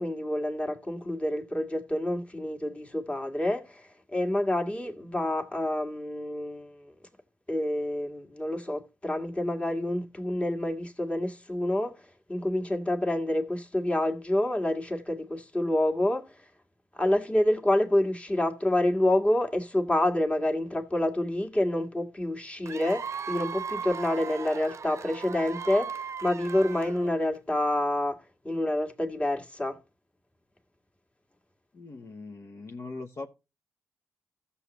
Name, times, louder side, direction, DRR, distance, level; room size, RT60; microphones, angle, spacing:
voice 1, 0.0-6.9 7.5-12.0 12.3-16.3 16.9-28.2 28.4-29.8, left 1 dB, 20° left, 1.9 m, -28 dB
Cheering / Applause / Crowd, 22.7-27.4, right 7 dB, 55° right, 0.7 m, -37 dB
voice 2, 31.7-33.3, left 3 dB, 50° left, 1.0 m, -40 dB
14.5 x 7.0 x 3.0 m
cardioid pair, 65°, 6 cm